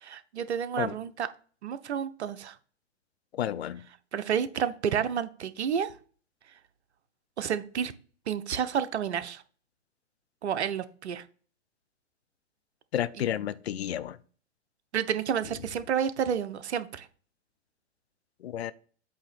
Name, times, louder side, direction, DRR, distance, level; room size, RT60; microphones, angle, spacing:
voice 1, 0.0-1.3 1.6-2.6 4.1-5.9 7.4-7.9 8.3-9.4 10.4-11.2 13.2-13.3 14.9-17.1, right 8 dB, 65° right, 0.7 m, -30 dB
voice 2, 3.3-3.9 12.9-14.2 18.4-18.7, left 11 dB, 60° left, 0.5 m, -31 dB
8.2 x 2.8 x 6.0 m
figure-of-eight pair, 110°, 36 cm